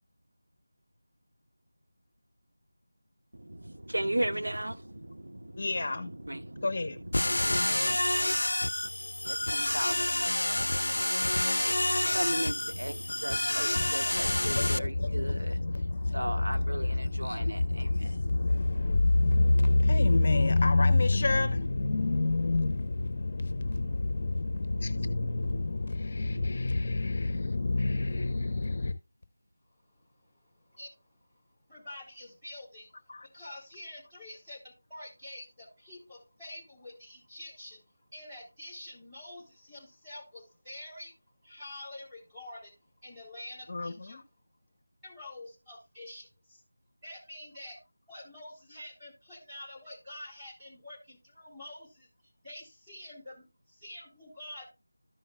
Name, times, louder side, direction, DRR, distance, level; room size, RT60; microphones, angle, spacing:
voice 1, 3.3-8.0 9.3-10.0 12.1-18.9, right 1 dB, 85° right, 1.0 m, -36 dB
voice 2, 5.6-6.1 6.6-7.0 13.8-28.9 33.1-33.3 43.7-44.2, left 2 dB, 40° left, 0.9 m, -27 dB
sound 1, 7.1-14.8, left 1 dB, 75° left, 0.4 m, -28 dB
voice 3, 29.9-31.2 31.7-33.0 33.2-37.8 38.1-41.1 41.4-42.8 43.0-44.2 45.0-46.6 47.0-47.8 48.1-52.1 52.4-54.7, left 1 dB, 10° right, 3.9 m, -47 dB
14.0 x 5.7 x 2.3 m
figure-of-eight pair, 170°, 0 cm